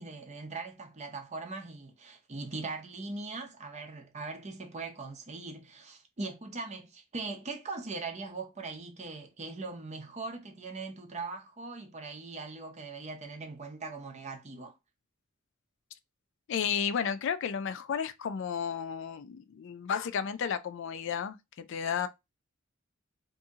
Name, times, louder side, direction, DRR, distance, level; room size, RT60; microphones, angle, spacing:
voice 1, 0.0-14.7, right 3 dB, 35° right, 0.7 m, -40 dB
voice 2, 16.5-22.1, left 7 dB, 60° left, 0.4 m, -33 dB
2.7 x 2.7 x 3.6 m
head